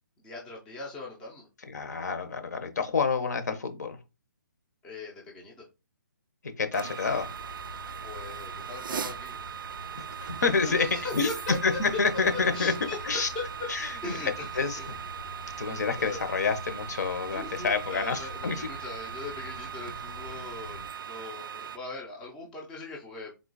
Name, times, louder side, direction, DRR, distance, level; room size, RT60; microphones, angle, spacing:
voice 1, 0.2-1.5 4.8-5.6 8.0-9.4 10.7-11.6 12.3-13.7 14.0-15.0 16.0-16.2 17.3-23.3, left 3 dB, 5° left, 0.5 m, -40 dB
voice 2, 1.7-4.0 6.4-7.4 10.0-10.9 11.1-11.3 11.6-12.7 13.0-13.3 13.7-14.2 14.6-14.8 15.6-18.7, left 5 dB, 55° left, 0.9 m, -28 dB
sound 1, 6.7-21.8, right 8 dB, 85° right, 0.4 m, -39 dB
sound 2, 7.1-20.9, left 2 dB, 85° left, 1.3 m, -47 dB
3.8 x 2.8 x 4.0 m
hypercardioid pair, 170°, 11 cm